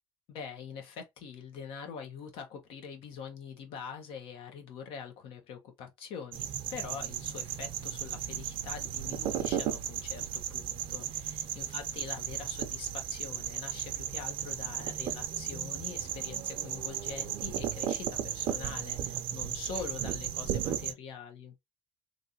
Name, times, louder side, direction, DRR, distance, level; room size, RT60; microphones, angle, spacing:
voice 1, 0.3-21.5, left 6 dB, 70° left, 1.2 m, -44 dB
sound 1, 6.3-20.9, right 10 dB, 65° right, 0.6 m, -35 dB
3.3 x 2.6 x 2.7 m
cardioid pair, 125°, 10 cm